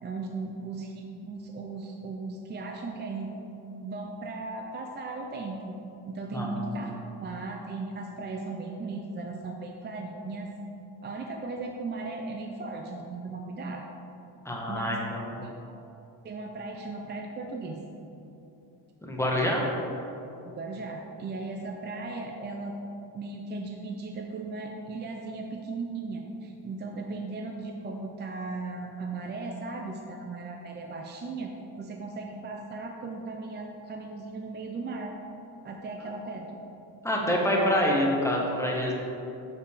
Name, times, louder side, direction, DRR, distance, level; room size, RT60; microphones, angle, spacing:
voice 1, 0.0-3.5 3.8-5.7 6.1-6.9 7.2-10.5 11.0-13.9 14.7-15.6 16.2-17.8 20.4-22.8 23.1-35.2 35.6-36.5, right 3 dB, 25° right, 2 dB, 0.4 m, -37 dB
voice 2, 14.4-15.4 19.0-19.7 37.0-38.9, equal, 5° left, -2 dB, 1.0 m, -26 dB
6.8 x 5.6 x 4.8 m, 2.9 s
cardioid pair, 145°, 45 cm